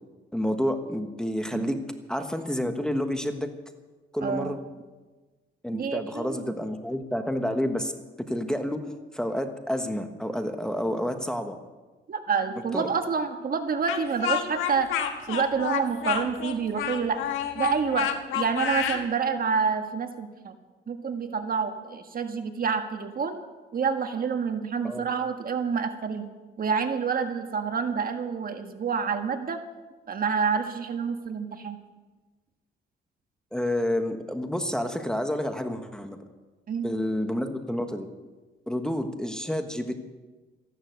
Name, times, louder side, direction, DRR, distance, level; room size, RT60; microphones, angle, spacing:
voice 1, 0.3-1.8 2.1-3.5 4.1-4.6 5.6-7.9 8.3-8.8 9.1-11.6 12.7-12.9 24.8-25.0 33.5-36.2 36.8-38.1 38.7-40.0, equal, 5° left, 7 dB, 1.4 m, -29 dB
voice 2, 4.2-4.6 5.7-6.5 12.1-14.9 15.3-17.2 17.5-20.5 20.9-23.4 23.7-26.3 26.6-29.6 30.1-31.8 36.7-36.9, right 5 dB, 45° right, 7 dB, 1.5 m, -28 dB
Speech, 13.9-19.0, left 9 dB, 90° left, 1.5 m, -29 dB
14.0 x 11.5 x 8.0 m, 1.3 s
cardioid pair, 90°, 20 cm